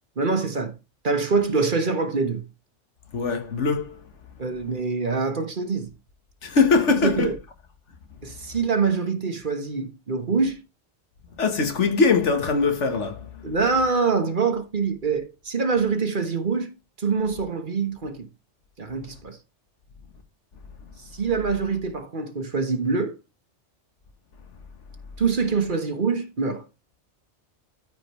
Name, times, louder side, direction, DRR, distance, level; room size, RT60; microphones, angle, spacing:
voice 1, 0.2-0.7 1.0-2.4 4.4-5.9 7.0-7.4 8.2-10.6 13.4-16.7 17.0-18.2 18.8-19.4 21.1-23.2 25.2-26.6, right 4 dB, 45° right, 1.4 m, -25 dB
voice 2, 3.1-4.1 6.4-7.3 11.4-13.4, left 4 dB, 85° left, 1.7 m, -22 dB
13.5 x 5.2 x 3.1 m
omnidirectional pair, 1.2 m